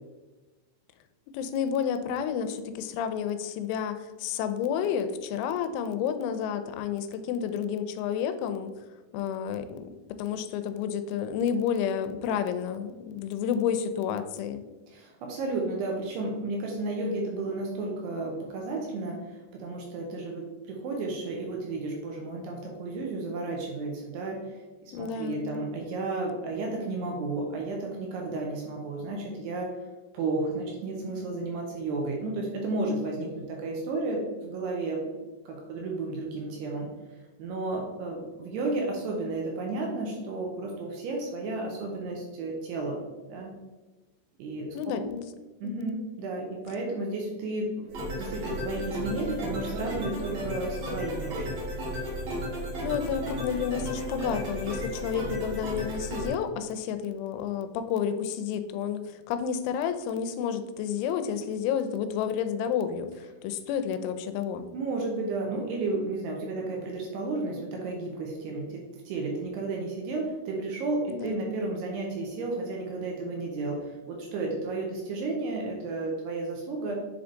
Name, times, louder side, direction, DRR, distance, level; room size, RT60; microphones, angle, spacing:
voice 1, 1.3-8.7 9.1-14.6 24.9-25.6 44.7-45.3 45.6-45.9 52.8-64.7 71.1-71.6, left 8 dB, 85° left, 10 dB, 3.0 m, -30 dB
voice 2, 14.9-29.7 30.1-35.0 35.5-36.9 37.4-43.0 43.3-43.5 44.4-45.0 45.6-47.9 48.2-51.6 64.7-77.0, right 2 dB, 75° right, 0 dB, 2.6 m, -32 dB
sound 1, 47.9-56.3, equal, 55° right, 2.0 m, -34 dB
7.3 x 3.5 x 3.8 m, 1.2 s
omnidirectional pair, 5.4 m